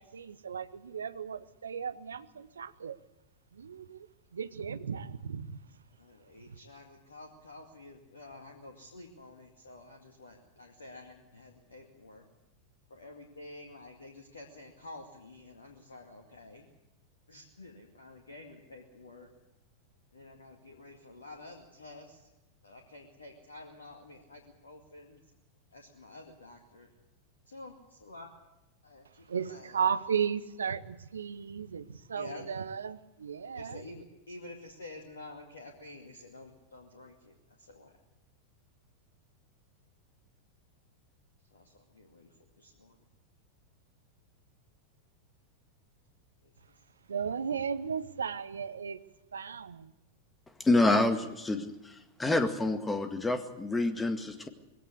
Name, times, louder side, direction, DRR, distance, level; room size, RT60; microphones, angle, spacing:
voice 1, 0.0-3.0 3.5-4.1 4.3-5.6 6.5-6.6 29.3-33.8 47.1-49.0 49.3-49.9, right 7 dB, 70° right, 1.0 m, -35 dB
voice 2, 5.9-12.2 12.9-16.7 17.3-19.3 20.1-22.3 22.6-25.2 25.7-26.9 27.5-28.3 28.8-29.8 32.1-32.4 33.5-37.3 37.6-37.9 41.5-42.3 42.6-43.0, left 2 dB, 70° left, 2.3 m, -50 dB
voice 3, 50.6-51.9 52.2-54.5, left 2 dB, 10° left, 2.0 m, -27 dB
21.0 x 17.0 x 8.2 m
figure-of-eight pair, 90°, 0 cm